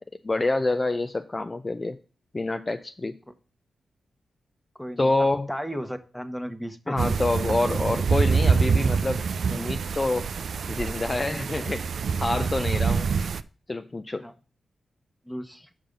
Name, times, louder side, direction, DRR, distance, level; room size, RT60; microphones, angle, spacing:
voice 1, 0.2-2.0 2.3-3.1 5.0-5.5 6.9-9.2 9.5-10.3 10.7-11.8 12.2-13.1 13.7-14.2, left 2 dB, 30° left, 8 dB, 0.5 m, -27 dB
voice 2, 4.8-5.1 5.5-7.0 14.2-14.3 15.3-15.7, equal, 5° left, 9 dB, 1.1 m, -34 dB
sound 1, 7.0-13.4, right 5 dB, 70° right, 0.4 m, -25 dB
5.5 x 5.2 x 5.2 m, 0.37 s
supercardioid pair, 45°, 0 cm